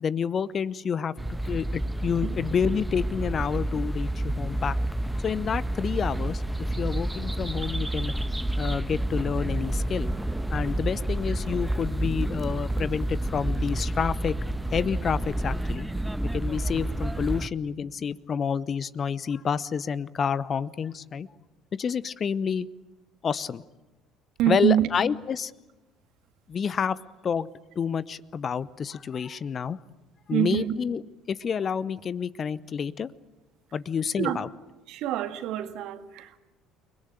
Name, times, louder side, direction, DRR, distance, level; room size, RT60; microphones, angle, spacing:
voice 1, 0.0-4.8 5.2-8.1 8.6-10.1 10.5-14.4 14.7-15.9 16.3-21.3 21.8-22.7 23.2-23.6 24.5-25.5 26.5-27.5 27.8-29.8 30.3-31.0 31.3-33.1 33.7-34.5, left 7 dB, 35° left, 19 dB, 0.9 m, -29 dB
sound 1, 1.2-17.5, right 1 dB, 5° right, 1.3 m, -29 dB
voice 2, 24.4-24.9 30.3-30.8 34.2-34.4 34.9-36.4, right 12 dB, 55° right, 10 dB, 1.9 m, -26 dB
30.0 x 21.5 x 8.9 m, 1.1 s
figure-of-eight pair, 55°, 0 cm